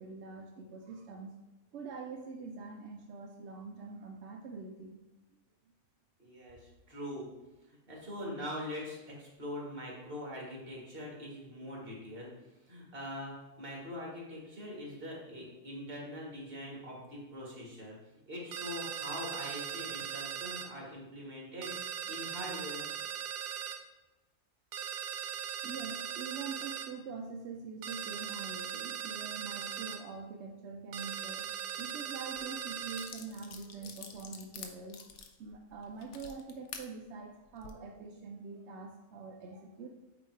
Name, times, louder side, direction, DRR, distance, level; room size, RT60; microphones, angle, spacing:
voice 1, 0.0-1.3 1.7-5.0 25.6-35.1 35.4-39.9, right 4 dB, 65° right, 2 dB, 0.7 m, -44 dB
voice 2, 6.2-7.3 7.7-12.3 12.6-18.0 18.3-22.8, left 1 dB, 40° right, -3 dB, 2.0 m, -43 dB
sound 1, 18.5-20.7 21.6-23.8 24.7-26.9 27.8-30.0 30.9-33.1, right 9 dB, 90° right, 1.1 m, -39 dB
sound 2, 32.4-32.5 32.9-36.9 37.4-37.7, left 6 dB, 70° left, 1.1 m, -47 dB
8.7 x 3.1 x 4.5 m, 1.1 s
omnidirectional pair, 1.6 m